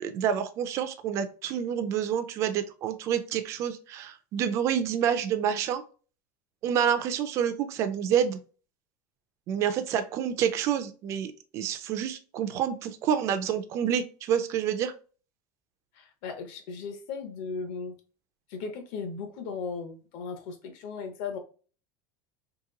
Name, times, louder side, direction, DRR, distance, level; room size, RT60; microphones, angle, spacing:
voice 1, 0.0-5.8 6.6-8.4 9.5-14.9, right 8 dB, 30° right, 9 dB, 0.4 m, -28 dB
voice 2, 15.9-17.9 18.5-21.4, left 5 dB, 50° left, 5 dB, 0.8 m, -37 dB
2.9 x 2.6 x 3.7 m, 0.36 s
cardioid pair, 175°, 10 cm